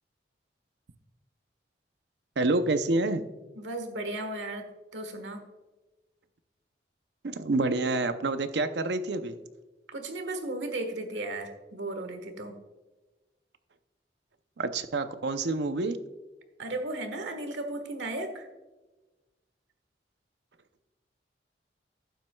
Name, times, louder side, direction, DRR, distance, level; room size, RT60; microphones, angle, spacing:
voice 1, 2.4-3.2 7.2-9.4 14.6-16.0, right 2 dB, 70° right, 10 dB, 0.6 m, -27 dB
voice 2, 3.5-5.4 9.9-12.6 16.6-18.5, right 2 dB, 85° right, 7 dB, 1.4 m, -35 dB
12.0 x 9.2 x 2.3 m, 1.2 s
head